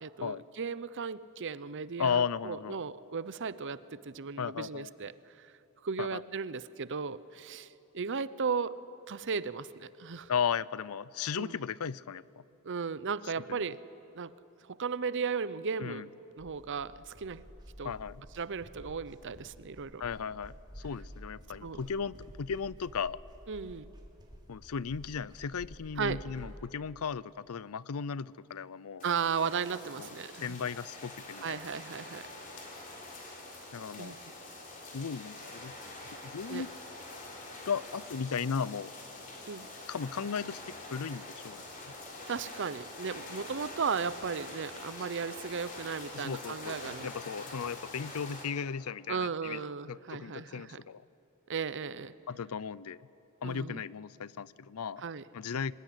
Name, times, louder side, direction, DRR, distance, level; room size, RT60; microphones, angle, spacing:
voice 1, 0.0-5.5 5.8-8.8 9.1-10.3 11.4-11.6 12.6-13.8 14.1-14.3 14.7-16.0 16.4-17.4 17.8-17.9 18.4-20.0 21.6-21.8 23.5-23.9 26.0-26.2 29.0-30.6 31.4-32.2 34.0-34.2 36.5-36.7 39.5-39.7 42.3-47.1 49.1-50.8 51.5-52.1 53.4-53.8 55.0-55.2, right 5 dB, 60° right, 16 dB, 0.7 m, -36 dB
voice 2, 2.0-2.8 4.4-4.9 6.0-6.2 10.3-12.4 13.5-13.6 15.8-16.1 17.8-18.2 20.0-23.2 24.5-29.1 30.0-30.1 30.4-31.7 33.7-34.2 34.9-35.9 36.2-36.7 37.7-38.9 39.9-41.6 46.1-49.6 49.9-51.0 52.3-53.0 53.4-55.0 55.3-55.7, left 6 dB, 80° left, 20 dB, 0.5 m, -36 dB
sound 1, 16.4-26.6, equal, 20° right, 3.0 m, -51 dB
sound 2, 29.0-48.4, left 2 dB, 40° left, 4.0 m, -45 dB
25.0 x 20.5 x 9.9 m, 2.8 s
head